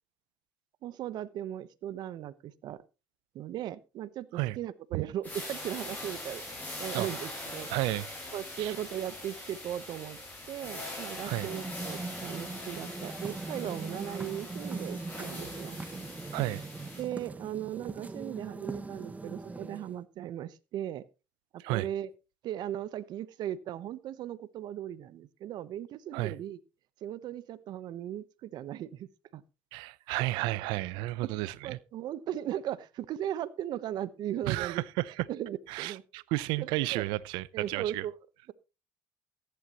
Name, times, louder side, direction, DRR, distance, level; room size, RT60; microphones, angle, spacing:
voice 1, 0.8-2.8 3.3-7.7 8.3-10.2 10.5-15.8 17.0-21.0 21.5-22.1 22.4-26.6 27.0-29.4 31.6-34.8 35.3-36.0 36.6-37.0 37.5-38.1, right 11 dB, 65° right, 0.9 m, -37 dB
sound 1, 5.2-17.0, left 1 dB, 20° left, 7.4 m, -42 dB
voice 2, 7.7-8.1 8.6-8.7 11.3-11.5 16.3-16.7 21.6-21.9 26.1-26.3 29.7-31.8 34.5-35.2 35.7-38.1, right 19 dB, 85° right, 0.6 m, -32 dB
sound 2, 11.1-20.0, right 3 dB, 20° right, 1.2 m, -41 dB
14.5 x 11.5 x 3.0 m
supercardioid pair, 80°, 8 cm